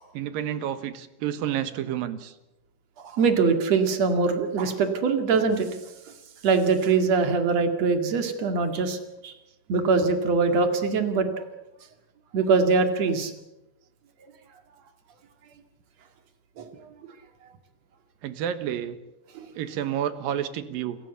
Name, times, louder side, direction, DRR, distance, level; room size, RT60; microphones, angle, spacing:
voice 1, 0.1-2.4 18.2-19.0 19.5-21.0, right 10 dB, 80° right, 12 dB, 3.0 m, -30 dB
voice 2, 3.0-5.7 6.4-9.0 9.2-9.3 9.7-11.4 12.3-13.3 16.6-16.7 19.4-19.5, right 4 dB, 50° right, 7 dB, 3.1 m, -23 dB
27.5 x 15.0 x 8.2 m, 0.95 s
omnidirectional pair, 4.1 m